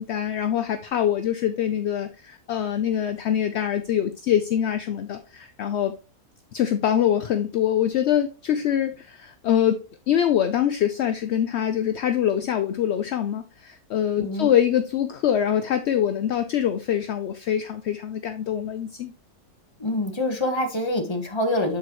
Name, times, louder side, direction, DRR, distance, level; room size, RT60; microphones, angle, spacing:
voice 1, 0.0-5.9 6.5-9.8 10.1-19.1, left 10 dB, 65° left, 9 dB, 0.7 m, -24 dB
voice 2, 14.2-14.5 19.8-21.8, left 1 dB, 20° left, 4 dB, 1.2 m, -25 dB
8.1 x 4.7 x 3.0 m, 0.33 s
omnidirectional pair, 1.6 m